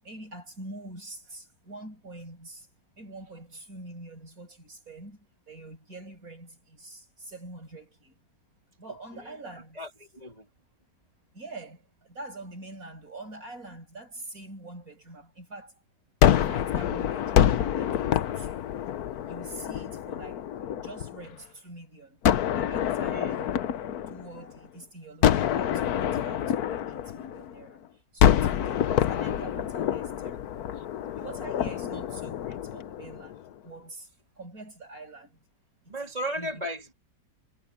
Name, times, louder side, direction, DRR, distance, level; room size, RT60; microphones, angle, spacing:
voice 1, 0.0-2.7 3.0-8.2 8.8-9.8 11.3-15.8 16.3-18.7 19.2-20.5 20.8-22.2 22.5-23.6 24.1-30.6 31.1-34.1 34.4-35.4 35.8-36.6, right 2 dB, 55° right, 7.9 m, -45 dB
voice 2, 9.7-10.5 23.1-23.4 24.3-24.5 30.8-30.9 35.9-36.9, equal, 25° right, 2.8 m, -36 dB
Gunshot gunfire, 16.2-21.3 22.2-24.7 25.2-27.7 28.2-33.4, left 10 dB, 70° left, 1.3 m, -26 dB
omnidirectional pair, 1.8 m